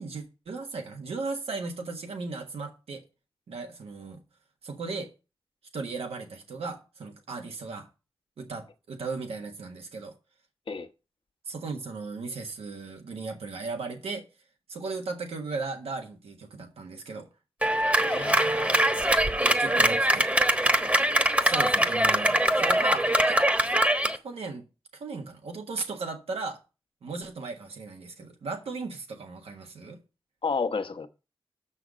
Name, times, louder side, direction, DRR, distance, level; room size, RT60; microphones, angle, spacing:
voice 1, 0.0-3.0 3.5-4.2 4.6-5.1 5.7-7.9 8.4-10.1 11.4-14.2 14.7-17.3 19.4-20.6 21.4-23.4 24.1-24.6 24.9-26.6 27.0-30.0, right 4 dB, 90° right, 1.5 m, -36 dB
Clapping, 17.6-24.2, right 1 dB, 15° right, 1.1 m, -23 dB
voice 2, 18.0-18.8 30.4-31.1, left 5 dB, 60° left, 1.1 m, -31 dB
6.5 x 6.3 x 6.2 m
cardioid pair, 50°, 10 cm